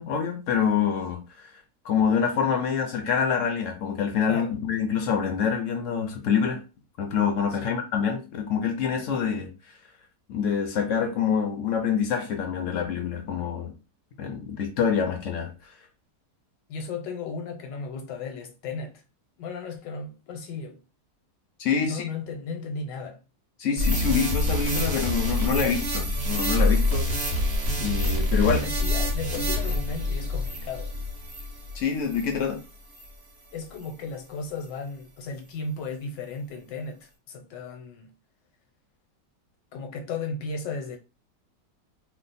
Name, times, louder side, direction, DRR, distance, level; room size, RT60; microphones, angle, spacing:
voice 1, 0.0-1.5 1.8-6.6 7.0-9.5 10.3-13.7 14.2-15.5 21.6-22.1 23.6-27.1 27.8-28.6 31.7-32.6, left 7 dB, 65° left, 0.8 m, -26 dB
voice 2, 16.7-19.0 19.4-20.8 21.8-23.2 28.4-30.9 33.5-38.1 39.7-41.0, left 4 dB, 85° left, 1.4 m, -35 dB
sound 1, 23.8-32.4 32.9-33.1, left 1 dB, 45° right, 1.0 m, -26 dB
3.1 x 2.0 x 4.0 m
omnidirectional pair, 1.9 m